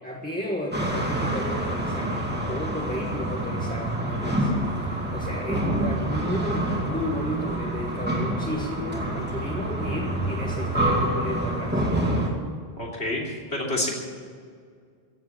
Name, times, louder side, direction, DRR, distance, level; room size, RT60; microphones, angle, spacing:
voice 1, 0.0-11.9, equal, 10° left, -2 dB, 1.5 m, -33 dB
sound 1, 0.7-12.3, right 1 dB, 10° right, 2.5 m, -27 dB
voice 2, 12.8-13.2 13.5-13.9, left 2 dB, 80° left, -2 dB, 3.5 m, -27 dB
15.5 x 8.2 x 9.6 m, 2.1 s
omnidirectional pair, 1.1 m